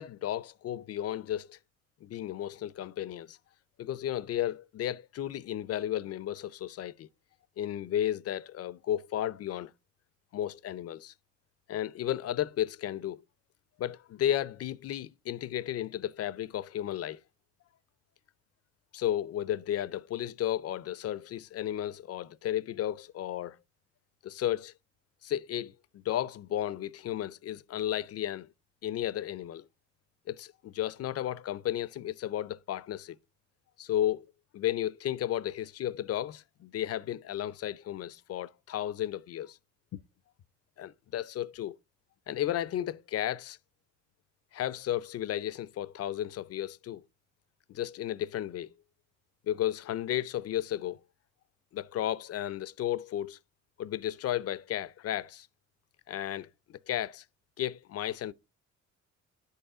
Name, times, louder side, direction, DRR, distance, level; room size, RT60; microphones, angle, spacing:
voice 1, 0.0-1.6 2.0-3.4 3.8-7.1 7.6-9.7 10.3-11.1 11.7-13.2 13.8-17.2 18.9-23.6 24.2-24.7 25.2-28.5 28.8-29.6 30.3-33.2 33.8-39.6 40.8-41.8 42.3-43.6 44.5-47.0 47.7-48.7 49.4-51.0 51.7-53.4 53.8-55.5 56.1-57.2 57.6-58.3, left 12 dB, 55° left, 0.4 m, -33 dB
10.5 x 5.6 x 3.7 m
cardioid pair, 90°, 30 cm